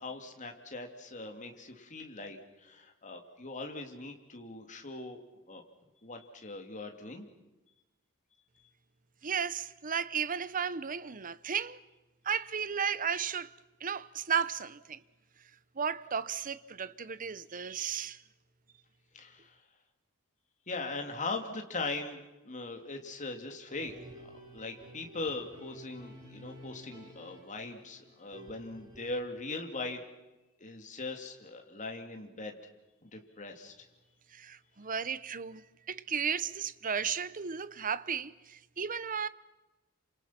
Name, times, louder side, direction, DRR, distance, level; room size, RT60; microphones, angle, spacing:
voice 1, 0.0-5.2 5.5-5.6 6.0-7.3 19.1-19.6 20.7-24.3 24.5-30.0 30.6-32.6 33.0-33.7, left 3 dB, 35° left, 2.9 m, -40 dB
voice 2, 9.2-11.8 12.2-13.5 13.8-15.0 15.8-18.2 34.3-39.3, right 7 dB, 40° right, 0.8 m, -34 dB
sound 1, 23.7-29.2, equal, 20° right, 5.4 m, -52 dB
28.5 x 26.5 x 6.0 m
head